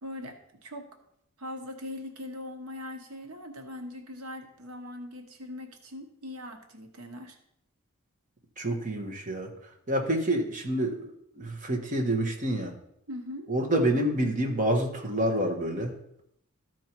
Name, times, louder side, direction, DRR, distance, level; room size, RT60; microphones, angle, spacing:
voice 1, 0.0-0.9 1.4-7.4 13.1-13.5, left 1 dB, 85° right, 5 dB, 1.2 m, -41 dB
voice 2, 8.6-12.8 13.5-15.9, right 1 dB, 35° right, 1 dB, 1.3 m, -28 dB
13.5 x 4.5 x 4.5 m, 0.73 s
head